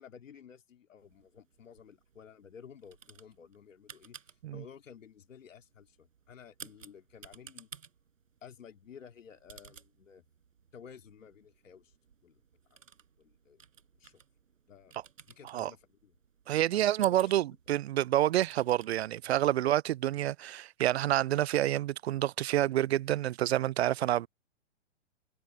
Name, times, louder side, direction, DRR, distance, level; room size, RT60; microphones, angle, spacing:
voice 1, 0.0-4.2 4.5-7.7 8.4-10.2 10.7-11.9 12.2-12.4 12.7-12.8 13.2-13.6 14.0-14.2 14.7-14.9 15.3-16.1 16.7-17.3, left 7 dB, 75° left, 3.5 m, -53 dB
sound 1, 1.0-19.8, right 6 dB, 80° right, 5.6 m, -56 dB
voice 2, 16.5-24.3, right 13 dB, 55° right, 0.5 m, -28 dB
hypercardioid pair, 130°, 39 cm